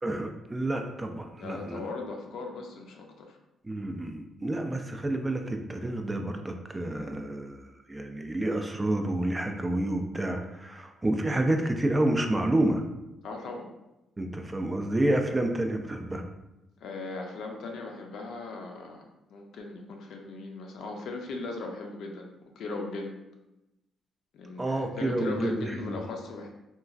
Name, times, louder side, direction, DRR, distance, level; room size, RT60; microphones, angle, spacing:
voice 1, 0.0-1.8 3.6-12.8 14.2-16.2 24.6-26.0, right 1 dB, 20° right, 4 dB, 0.3 m, -29 dB
voice 2, 1.3-3.4 13.2-13.7 16.8-22.3 22.6-23.1 24.3-26.5, left 3 dB, 75° left, 2 dB, 0.5 m, -38 dB
2.9 x 2.3 x 2.4 m, 0.94 s
cardioid pair, 90°, 0 cm